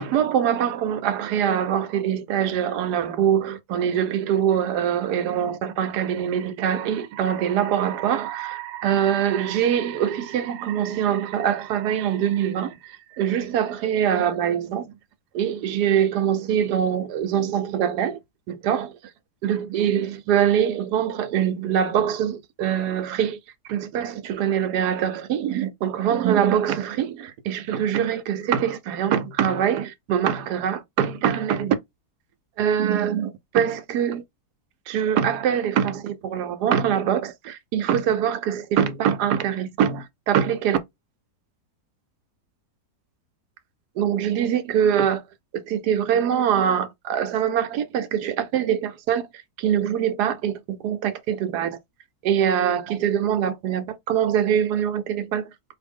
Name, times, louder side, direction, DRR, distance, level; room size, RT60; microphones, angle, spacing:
voice 1, 0.0-14.9 15.3-18.2 18.5-19.0 19.4-23.4 23.7-31.8 32.6-34.2 34.9-40.8 44.0-45.2 45.5-49.3 49.6-51.8 52.2-55.4, right 9 dB, 75° right, 1.1 m, -23 dB
4.4 x 2.6 x 3.5 m
omnidirectional pair, 1.8 m